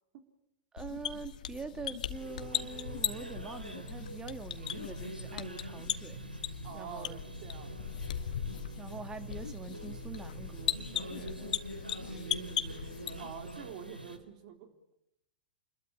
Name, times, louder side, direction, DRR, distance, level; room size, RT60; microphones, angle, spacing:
voice 1, 0.7-6.2 6.7-7.2 8.8-11.6 12.0-12.3 12.6-13.2, right 4 dB, 15° right, 1.8 m, -45 dB
sound 1, 0.8-13.5, left 10 dB, 60° left, 1.9 m, -39 dB
sound 2, 2.1-14.2, right 1 dB, 85° right, 3.7 m, -44 dB
voice 2, 6.6-8.0 13.2-14.8, right 8 dB, 45° right, 3.5 m, -47 dB
29.0 x 22.0 x 8.9 m
figure-of-eight pair, 100°, 5 cm